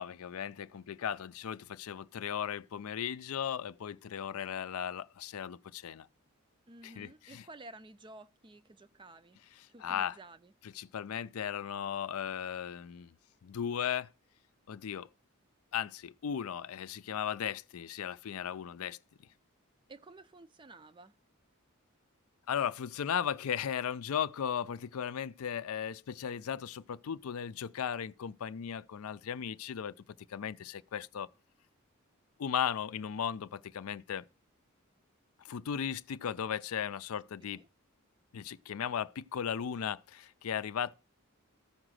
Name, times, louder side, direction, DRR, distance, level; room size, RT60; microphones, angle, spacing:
voice 1, 0.0-6.1 6.8-7.5 9.5-10.2 10.6-13.1 13.4-14.1 14.7-15.1 15.7-19.0 22.5-29.9 30.3-31.3 32.4-34.2 35.4-37.6 38.3-40.9, left 8 dB, 75° left, 0.4 m, -36 dB
voice 2, 6.7-9.4 9.7-10.5 19.9-21.1 37.4-37.7, right 2 dB, 20° right, 0.4 m, -53 dB
14.0 x 5.0 x 6.3 m
head